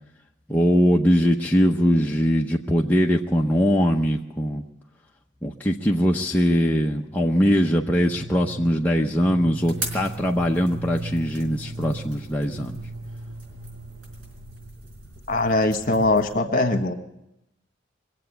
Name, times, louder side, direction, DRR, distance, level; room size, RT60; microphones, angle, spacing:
voice 1, 0.5-4.7 5.4-12.8, equal, 10° left, -1 dB, 0.7 m, -21 dB
sound 1, 7.1-14.9, right 2 dB, 20° right, 1.0 m, -39 dB
sound 2, 9.6-16.3, right 2 dB, 90° right, 4.5 m, -41 dB
voice 2, 15.3-16.9, left 2 dB, 45° left, 6 dB, 1.4 m, -21 dB
22.5 x 7.8 x 8.1 m, 0.85 s
head